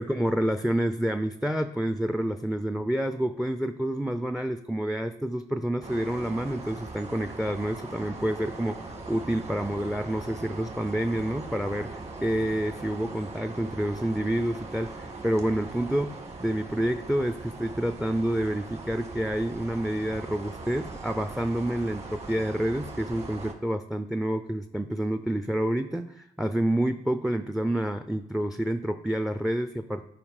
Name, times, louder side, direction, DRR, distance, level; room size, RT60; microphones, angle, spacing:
voice 1, 0.0-16.1 16.4-30.1, right 1 dB, ahead, 10 dB, 0.5 m, -28 dB
sound 1, 5.8-23.5, right 3 dB, 40° right, 1.6 m, -41 dB
8.8 x 4.6 x 4.8 m, 0.85 s
supercardioid pair, 65°, 17 cm